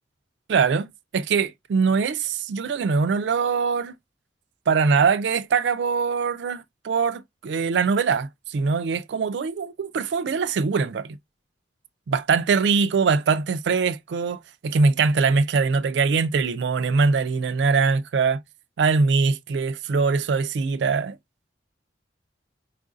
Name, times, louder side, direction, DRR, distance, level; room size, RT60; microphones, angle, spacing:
voice 1, 0.5-3.9 4.7-11.1 12.1-18.4 18.8-21.2, right 5 dB, 70° right, 0.4 m, -22 dB
4.6 x 2.5 x 2.4 m
head